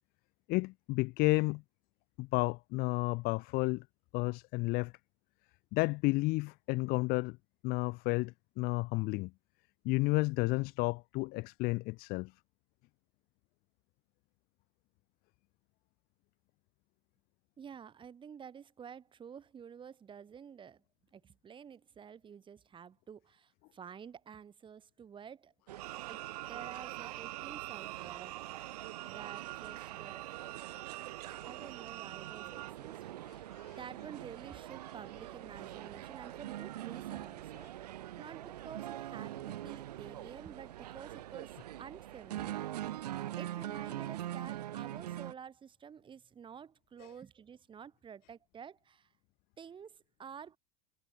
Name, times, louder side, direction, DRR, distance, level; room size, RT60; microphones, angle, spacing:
voice 1, 0.5-1.6 2.2-3.8 4.1-4.9 5.7-7.4 7.6-9.3 9.8-12.3 47.0-47.1, left 24 dB, 50° left, 0.8 m, -31 dB
voice 2, 17.6-20.8 21.1-25.5 25.8-26.2 26.5-28.5 29.0-30.2 31.4-33.5 33.8-42.7 43.4-49.1 49.6-50.6, right 7 dB, 25° right, 2.7 m, -50 dB
Speech, 25.5-26.7 27.6-27.8 29.1-29.2 29.6-29.8 30.7-31.6 31.8-32.0 33.2-34.2 35.1-35.2 35.6-35.9 36.2-36.5 37.2-37.8, left 17 dB, 75° left, 4.8 m, -68 dB
sound 1, 25.7-45.3, right 13 dB, 90° right, 1.1 m, -44 dB
sound 2, 25.8-32.7, right 20 dB, 70° right, 3.1 m, -45 dB
supercardioid pair, 115°, 20 cm